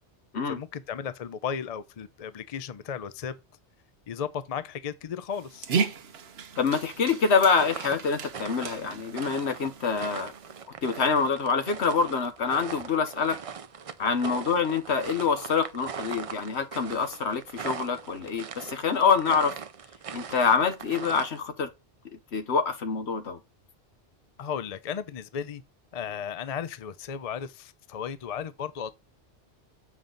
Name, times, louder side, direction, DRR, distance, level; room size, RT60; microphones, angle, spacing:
voice 1, 0.5-3.3 4.1-5.7 24.4-25.6 25.9-28.9, left 7 dB, 50° left, 0.5 m, -35 dB
Dog, 5.3-10.6, right 5 dB, 65° right, 1.1 m, -35 dB
voice 2, 6.6-10.3 10.8-13.4 14.0-19.5 20.1-21.7 22.3-23.4, left 5 dB, 70° left, 1.3 m, -26 dB
sound 1, 7.5-21.4, right 6 dB, 45° right, 0.4 m, -40 dB
7.3 x 5.3 x 3.9 m
omnidirectional pair, 1.2 m